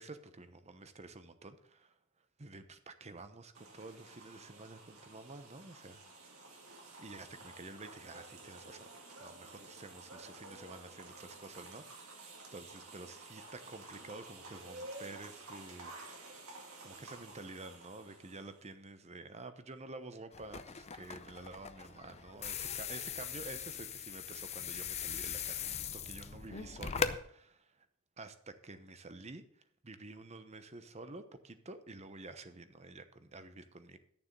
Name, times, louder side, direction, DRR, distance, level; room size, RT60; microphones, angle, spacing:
voice 1, 0.0-1.9 2.4-6.0 7.0-8.9 9.2-16.4 16.8-27.7 28.2-29.4 29.8-34.0, right 2 dB, 30° right, 10 dB, 0.9 m, -50 dB
sound 1, 3.5-18.7, right 2 dB, 65° right, 2.6 m, -52 dB
sound 2, 20.3-27.2, left 6 dB, 30° left, 0.6 m, -40 dB
11.5 x 7.0 x 6.7 m, 0.68 s
head